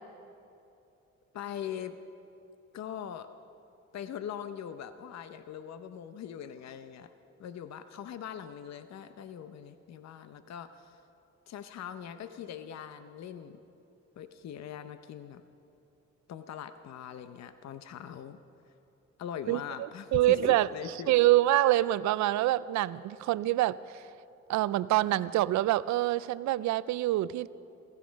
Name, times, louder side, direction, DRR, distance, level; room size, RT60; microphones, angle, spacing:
voice 1, 1.3-2.0 2.7-3.3 3.9-7.1 7.4-11.0 11.5-13.6 14.2-15.4 16.3-18.4 19.2-21.2, left 9 dB, 60° left, 10 dB, 0.8 m, -41 dB
voice 2, 20.1-20.7 21.1-23.8 24.5-27.5, right 15 dB, 70° right, 17 dB, 0.4 m, -25 dB
16.0 x 15.5 x 5.2 m, 2.7 s
cardioid pair, 90°, 30 cm